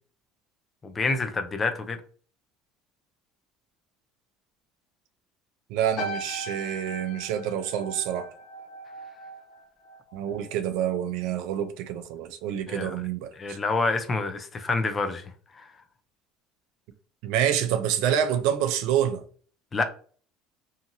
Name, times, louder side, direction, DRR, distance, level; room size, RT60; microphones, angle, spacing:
voice 1, 0.8-2.0 12.7-13.0 13.4-15.2 15.5-15.7 19.7-19.8, left 3 dB, 25° left, 0.4 m, -27 dB
voice 2, 5.7-8.3 10.1-13.6 17.2-19.2, right 9 dB, 75° right, 0.4 m, -27 dB
sound 1, 6.0-10.6 10.9-11.3, right 1 dB, 50° left, 0.8 m, -39 dB
2.8 x 2.5 x 2.6 m
supercardioid pair, 105°, 0 cm